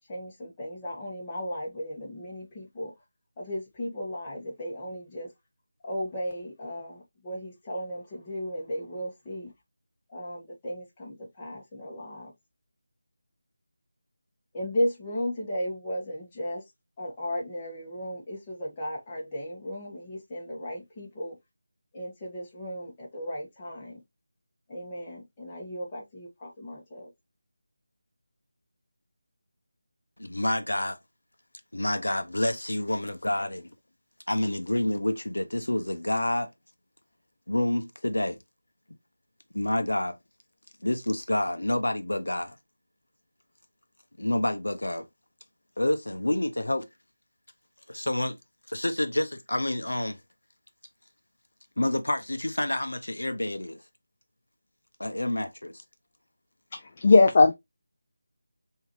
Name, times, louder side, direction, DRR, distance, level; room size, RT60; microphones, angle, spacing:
voice 1, 0.1-2.9 3.4-5.3 5.8-9.5 10.1-12.3 14.5-16.6 17.0-21.4 21.9-24.0 24.7-27.1, equal, 20° left, 1.4 m, -35 dB
voice 2, 30.2-31.0 31.7-33.7 34.3-36.5 37.5-38.4 39.5-40.2 40.8-42.6 44.2-45.1 45.8-46.9 47.9-48.4 48.7-50.2 51.8-53.8 55.0-55.8, left 1 dB, 85° left, 0.7 m, -28 dB
voice 3, 56.7-57.5, left 3 dB, 35° left, 0.4 m, -18 dB
4.6 x 2.8 x 3.1 m
figure-of-eight pair, 165°, 0 cm